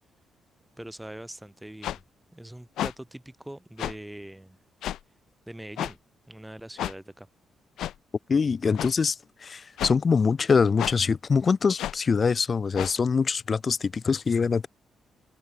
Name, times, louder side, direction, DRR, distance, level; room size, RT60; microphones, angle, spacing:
voice 1, 0.8-2.0 2.3-4.6 5.5-6.0 6.3-7.3, right 1 dB, 5° right, 7.1 m, -42 dB
sound 1, 1.8-2.0 2.8-2.9 3.8-4.0 4.8-5.0 5.8-5.9 6.8-6.9 7.8-8.0 8.8-8.9 9.8-10.0 10.8-11.0 11.8-12.0 12.7-12.9, left 12 dB, 85° left, 2.3 m, -31 dB
voice 2, 8.3-9.2 9.4-14.7, left 5 dB, 45° left, 2.0 m, -24 dB
cardioid pair, 80°, 0 cm